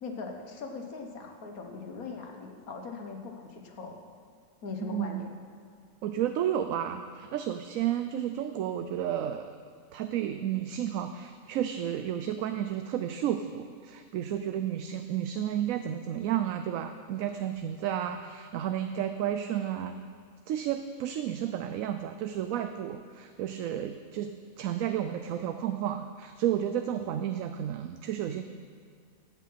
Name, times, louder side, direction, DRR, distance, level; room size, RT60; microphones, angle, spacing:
voice 1, 0.0-4.0 4.6-5.3, left 4 dB, 90° left, 3 dB, 1.7 m, -40 dB
voice 2, 4.8-5.2 6.0-9.5 9.9-19.9 20.5-28.4, right 10 dB, 75° right, 8 dB, 1.0 m, -32 dB
15.0 x 8.4 x 5.7 m, 2.2 s
omnidirectional pair, 1.5 m